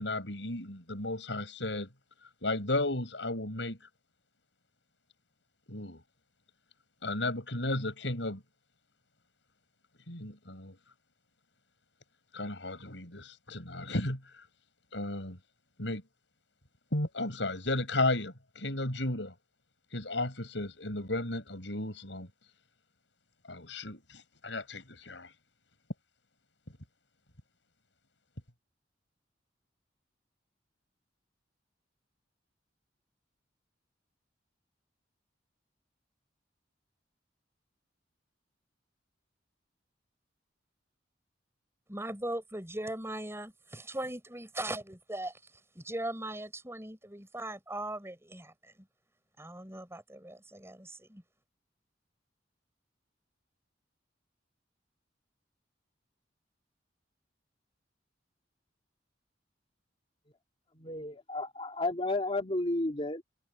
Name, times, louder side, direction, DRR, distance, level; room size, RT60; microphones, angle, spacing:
voice 1, 0.0-1.9 2.4-3.8 5.7-6.0 7.0-8.4 10.1-10.8 12.3-14.2 14.9-15.4 15.8-16.0 16.9-19.3 19.9-22.3 23.5-25.3, left 2 dB, 75° left, 7.2 m, -34 dB
voice 2, 41.9-45.4 45.7-48.9 49.4-51.2, right 1 dB, 15° right, 6.5 m, -39 dB
voice 3, 60.7-63.2, left 2 dB, 30° left, 2.7 m, -32 dB
head